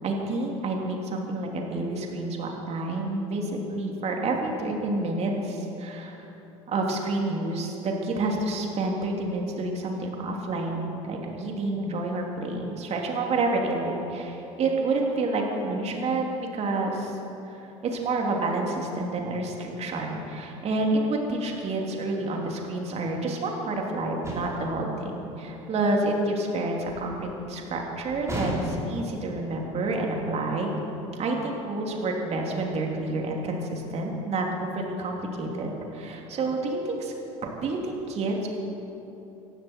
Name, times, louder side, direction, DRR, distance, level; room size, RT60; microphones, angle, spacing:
voice 1, 0.0-6.3 6.7-17.2 17.5-30.7 31.2-37.1 37.6-38.5, right 2 dB, 40° right, 0 dB, 3.1 m, -29 dB
sound 1, 24.2-24.8 28.3-29.1, right 1 dB, 20° right, 4.3 m, -32 dB
18.5 x 14.5 x 4.6 m, 3.0 s
hypercardioid pair, 70°, 17 cm